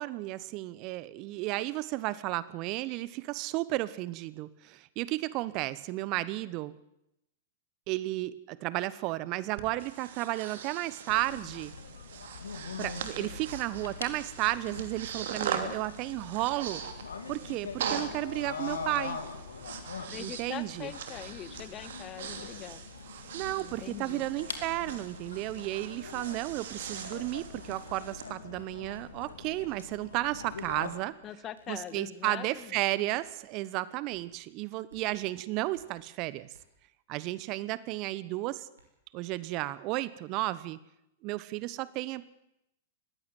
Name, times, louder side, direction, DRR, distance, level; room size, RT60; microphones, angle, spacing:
voice 1, 0.0-6.7 7.9-11.7 12.8-16.8 17.3-19.2 20.2-20.9 23.3-31.2 31.7-36.5 37.1-38.7 39.1-40.8 41.2-42.4, right 18 dB, 40° right, 18 dB, 1.0 m, -33 dB
Breathing, 9.6-28.3, right 8 dB, 65° right, 2.9 m, -41 dB
sound 1, 11.1-31.0, left 5 dB, 75° left, 2.9 m, -43 dB
voice 2, 20.1-22.8 23.6-24.3 31.2-32.7, left 11 dB, 30° left, 13 dB, 1.8 m, -42 dB
sound 2, 21.8-21.9 22.2-22.3 22.9-23.1 23.4-24.3 24.7-24.8 25.4-25.6 26.2-26.3 27.0-27.1 27.7-27.9 28.5-28.6 29.4-29.6 30.3-30.4 30.8-32.7 33.2-33.3 34.1-34.2 34.9-35.0 35.7-35.8 36.5-36.6 38.1-38.2 38.7-38.9, right 2 dB, 80° right, 6.0 m, -60 dB
20.0 x 15.5 x 9.4 m, 0.82 s
figure-of-eight pair, 105°, 0 cm